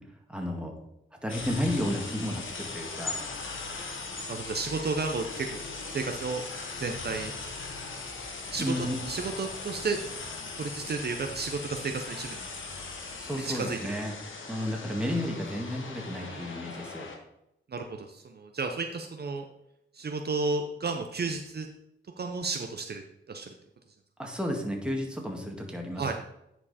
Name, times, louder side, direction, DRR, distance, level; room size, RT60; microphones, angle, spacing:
voice 1, 0.3-0.7 1.2-3.2 8.6-9.0 13.2-14.1 14.5-17.1 24.2-26.1, left 1 dB, 5° right, 1 dB, 1.9 m, -32 dB
sound 1, 1.3-17.2, left 4 dB, 70° left, 1.3 m, -39 dB
voice 2, 4.3-5.6 5.9-6.4 6.7-7.3 8.5-10.0 10.6-12.5 13.3-14.1 16.2-16.5 17.7-19.4 19.9-21.7 22.2-23.0 23.3-23.5 26.0-26.1, right 4 dB, 50° right, 4 dB, 0.7 m, -33 dB
10.0 x 4.7 x 4.2 m, 0.83 s
cardioid pair, 70°, 21 cm